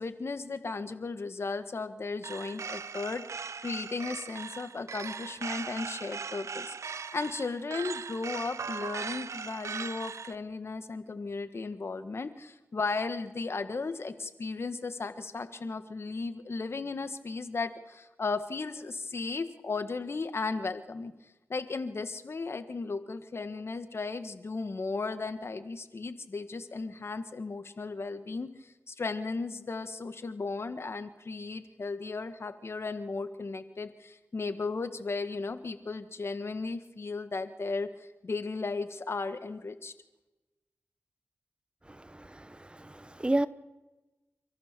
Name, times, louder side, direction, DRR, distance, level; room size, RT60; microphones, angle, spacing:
voice 1, 0.0-21.1 21.5-39.9, left 3 dB, 55° left, 1.6 m, -35 dB
sound 1, 2.2-10.4, right 5 dB, 80° right, 0.7 m, -39 dB
voice 2, 42.0-43.5, right 1 dB, 20° right, 1.0 m, -31 dB
29.0 x 14.0 x 6.8 m
cardioid pair, 50°, 5 cm